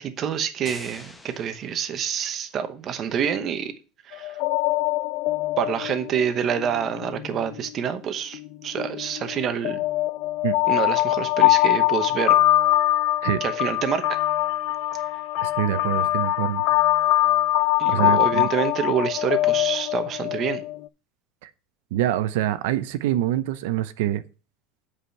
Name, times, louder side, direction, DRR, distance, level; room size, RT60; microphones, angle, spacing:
voice 1, 0.0-3.7 4.0-4.4 5.6-9.8 10.7-12.4 13.4-14.2 17.8-20.6, right 8 dB, 30° right, 0.9 m, -27 dB
sound 1, 0.7-2.5, left 2 dB, 10° left, 0.8 m, -45 dB
sound 2, 4.1-7.7 8.3-20.9, left 16 dB, 55° left, 0.3 m, -23 dB
voice 2, 15.4-16.6 17.9-18.5 21.4-21.5 21.9-24.2, right 12 dB, 85° right, 0.7 m, -25 dB
7.9 x 5.0 x 5.6 m
cardioid pair, 165°, 0 cm